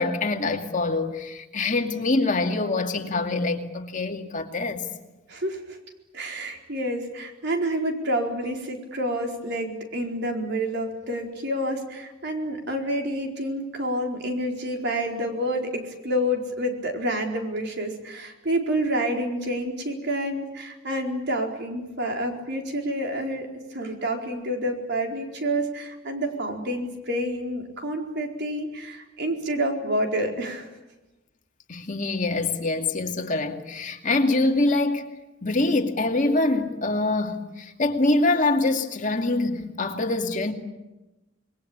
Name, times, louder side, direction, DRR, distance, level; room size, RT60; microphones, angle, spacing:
voice 1, 0.0-4.9 31.7-35.0 35.4-40.5, left 2 dB, 40° left, 2.4 m, -24 dB
voice 2, 5.3-5.8 6.1-30.7, equal, 60° right, 4.5 m, -28 dB
27.5 x 21.5 x 8.8 m
head